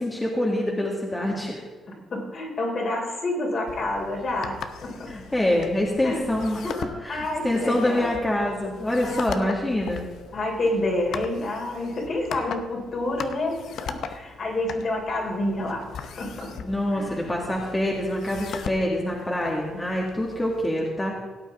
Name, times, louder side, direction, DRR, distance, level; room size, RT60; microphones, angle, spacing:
voice 1, 0.0-1.6 5.0-10.1 16.5-21.1, left 1 dB, 15° left, -2 dB, 1.9 m, -26 dB
voice 2, 2.1-5.1 6.0-6.2 7.1-8.1 9.0-9.5 10.3-16.5 16.9-17.3, left 1 dB, 50° left, 0 dB, 3.4 m, -28 dB
sound 1, 3.7-20.7, left 7 dB, 75° left, 0.7 m, -39 dB
17.0 x 8.4 x 3.6 m, 1.3 s
cardioid pair, 90°, 0 cm